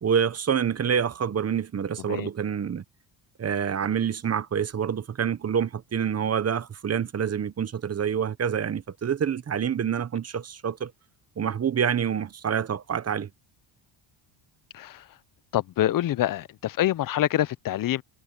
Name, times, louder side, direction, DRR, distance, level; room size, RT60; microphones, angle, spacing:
voice 1, 0.0-2.8 3.4-10.9 11.4-13.3, right 8 dB, 30° right, 1.0 m, -27 dB
voice 2, 2.0-2.3 14.7-15.1 15.5-18.0, left 13 dB, 45° left, 0.6 m, -26 dB
cardioid pair, 115°, 48 cm